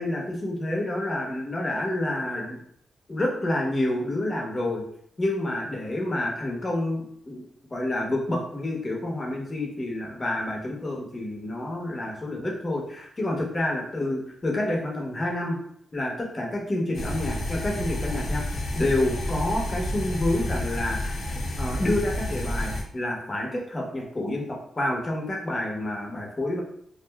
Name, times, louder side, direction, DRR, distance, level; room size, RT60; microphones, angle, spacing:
voice 1, 0.0-2.6 3.1-4.8 5.2-7.4 7.7-15.6 15.9-18.4 18.7-21.2 21.6-26.6, left 1 dB, 30° left, 0 dB, 0.8 m, -28 dB
sound 1, 16.9-22.8, left 1 dB, 75° left, 0.6 m, -30 dB
2.5 x 2.1 x 3.3 m, 0.66 s
cardioid pair, 100°, 0 cm